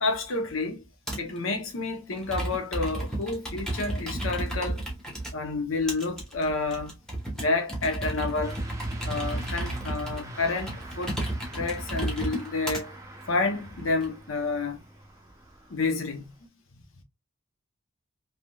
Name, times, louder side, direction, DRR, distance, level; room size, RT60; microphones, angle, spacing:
voice 1, 0.0-0.8 1.2-4.8 5.3-6.9 7.3-8.6 9.1-11.2 11.5-13.0 13.3-14.8 15.7-16.3, left 3 dB, 75° left, 0.7 m, -29 dB
Computer keyboard, 1.1-1.4 2.1-5.3 5.9-12.8 13.5-14.1, right 1 dB, 5° left, 0.9 m, -33 dB
Truck / Accelerating revving vroom, 8.4-16.4, right 1 dB, 15° right, 0.5 m, -43 dB
3.3 x 2.8 x 2.2 m
head